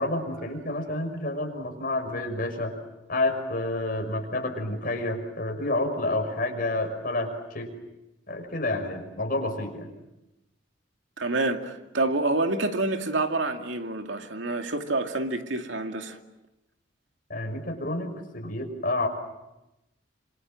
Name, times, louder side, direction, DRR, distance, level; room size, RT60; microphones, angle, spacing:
voice 1, 0.0-2.7 3.1-7.7 8.3-9.9 17.3-19.1, left 2 dB, 50° left, 5.9 m, -29 dB
voice 2, 11.2-16.2, right 2 dB, 85° right, 2.5 m, -27 dB
28.5 x 27.0 x 7.7 m
head